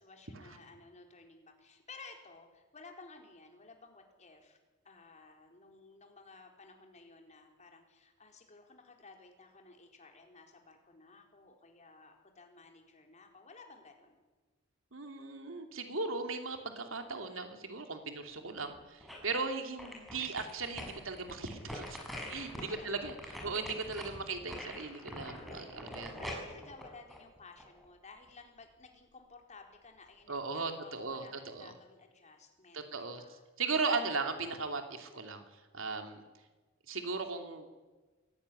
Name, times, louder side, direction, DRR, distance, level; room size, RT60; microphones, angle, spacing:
voice 1, 0.0-4.6 4.8-14.2 22.7-23.1 25.7-33.4, left 3 dB, 35° left, 3 dB, 4.1 m, -55 dB
voice 2, 14.9-22.0 22.3-26.3 30.3-31.7 32.7-36.2 36.9-37.7, right 4 dB, 75° right, 5 dB, 3.1 m, -37 dB
sound 1, 18.5-19.4 19.8-27.8 28.3-28.4, left 1 dB, ahead, 6.4 m, -45 dB
24.0 x 17.5 x 9.9 m, 1.3 s
head